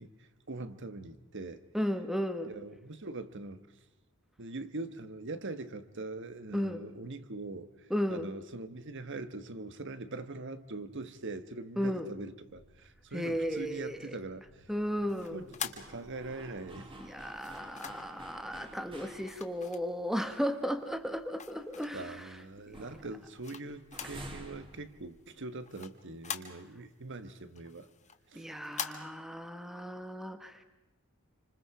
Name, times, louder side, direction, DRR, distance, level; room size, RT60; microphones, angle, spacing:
voice 1, 0.0-1.6 2.5-3.7 4.4-7.7 8.1-14.5 15.1-16.9 21.9-27.9 28.3-28.5, right 2 dB, 60° right, 1.3 m, -42 dB
voice 2, 1.7-2.5 6.5-6.8 7.9-8.3 11.8-12.1 13.1-14.2 14.7-15.4 17.0-22.4 22.7-22.8 28.3-30.6, equal, ahead, 1.3 m, -35 dB
sound 1, 12.5-19.8 20.2-20.3 20.7-22.3 22.6-25.6, right 1 dB, 25° right, 2.7 m, -52 dB
sound 2, 15.1-16.5 17.3-18.2 19.2-20.3 20.8-22.2 22.7-24.3 24.6-24.7 25.0-26.9 27.3-28.9, left 8 dB, 35° left, 1.6 m, -43 dB
28.0 x 26.0 x 4.9 m
head